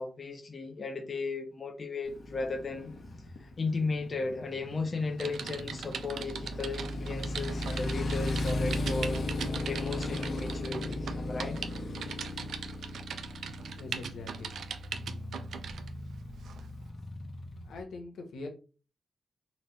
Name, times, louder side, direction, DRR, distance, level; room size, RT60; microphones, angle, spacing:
voice 1, 0.0-2.9 3.4-9.2 9.7-11.6, left 3 dB, 35° left, 0.6 m, -35 dB
Motorcycle, 2.0-17.8, left 2 dB, 55° left, 1.1 m, -37 dB
Typing, 5.2-15.9 16.4-16.6, right 7 dB, 80° right, 0.4 m, -40 dB
voice 2, 13.8-14.5 17.6-18.5, left 3 dB, 85° left, 1.2 m, -42 dB
4.1 x 2.9 x 3.3 m
wide cardioid pair, 125°, 0 cm